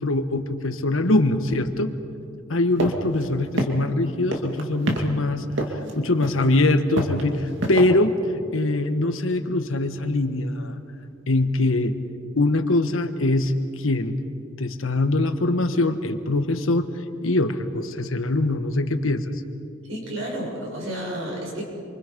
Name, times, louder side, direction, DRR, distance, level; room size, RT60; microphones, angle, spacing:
voice 1, 0.0-1.9 2.5-5.5 6.0-8.1 8.5-10.8 11.3-11.9 12.4-14.2 14.6-16.9 17.2-19.2, left 2 dB, 80° left, 8 dB, 1.4 m, -22 dB
sound 1, 2.8-2.9 3.2-3.3 3.6-4.0 4.3-5.0 5.6-5.9 6.2-6.5 6.9-7.8, right 1 dB, 65° right, 2.4 m, -25 dB
voice 2, 19.9-21.6, right 1 dB, 80° right, -2 dB, 7.3 m, -31 dB
27.5 x 24.5 x 5.3 m, 2.5 s
head